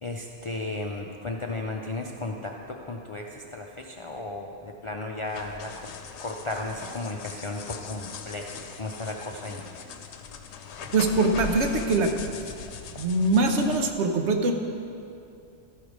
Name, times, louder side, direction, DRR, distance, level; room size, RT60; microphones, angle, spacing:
voice 1, 0.0-5.9 6.2-8.5 8.8-9.6, left 2 dB, 45° left, 0 dB, 0.4 m, -34 dB
sound 1, 5.3-13.9, left 6 dB, 80° left, 0.9 m, -40 dB
voice 2, 10.9-12.1 12.4-12.5 12.9-14.5, right 2 dB, 80° right, 4 dB, 1.1 m, -23 dB
13.0 x 4.7 x 5.0 m, 2.6 s
omnidirectional pair, 1.2 m